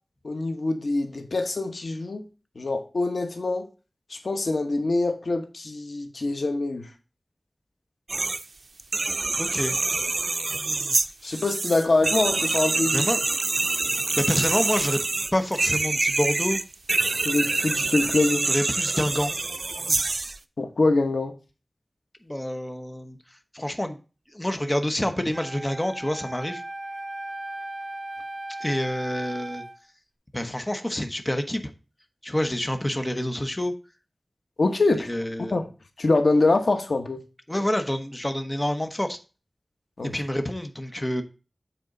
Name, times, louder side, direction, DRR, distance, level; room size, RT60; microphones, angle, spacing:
voice 1, 0.2-2.2 2.6-3.7 4.1-6.9 11.2-13.0 17.2-18.4 20.6-21.3 34.6-35.1 35.5-35.7 36.0-37.2 40.0-40.1, left 2 dB, 90° left, 1.0 m, -24 dB
sound 1, 8.1-8.4 8.8-20.4, right 3 dB, 70° right, 0.5 m, -26 dB
voice 2, 9.4-9.8 12.9-13.2 14.2-15.0 15.3-16.6 18.5-19.3 22.2-23.2 23.5-24.0 24.3-26.6 28.6-29.6 30.3-31.6 32.2-33.7 35.1-35.6 37.5-39.2 40.1-41.2, left 1 dB, 20° left, 1.0 m, -27 dB
Wind instrument woodwind instrument, 25.3-29.8, right 1 dB, 35° right, 1.6 m, -36 dB
7.9 x 4.5 x 3.8 m
wide cardioid pair, 65°, 0 cm